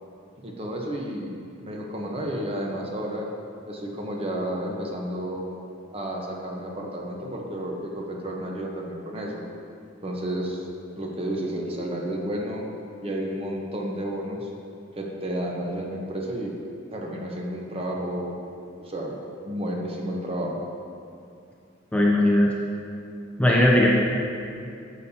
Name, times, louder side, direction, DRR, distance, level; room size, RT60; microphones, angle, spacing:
voice 1, 0.4-1.3 1.6-3.3 3.7-5.5 5.9-9.4 10.0-10.6 11.0-12.7 13.0-14.5 15.0-16.5 16.9-18.3 18.8-19.2 19.4-20.6, right 1 dB, 30° right, -1 dB, 0.9 m, -31 dB
voice 2, 21.9-22.5 23.4-23.9, left 1 dB, 5° left, -3 dB, 0.5 m, -18 dB
10.0 x 6.8 x 2.8 m, 2.5 s
head